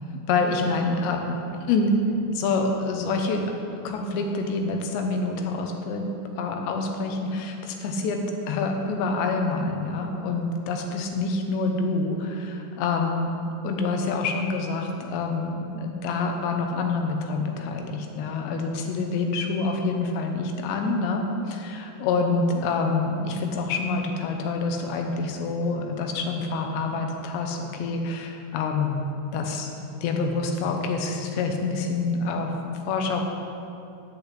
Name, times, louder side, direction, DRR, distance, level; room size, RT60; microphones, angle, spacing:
voice 1, 0.1-1.9 2.3-3.4 3.8-29.0 29.3-29.7 30.0-33.2, left 3 dB, 90° left, 3 dB, 3.2 m, -27 dB
7.8 x 7.0 x 8.2 m, 2.7 s
omnidirectional pair, 4.9 m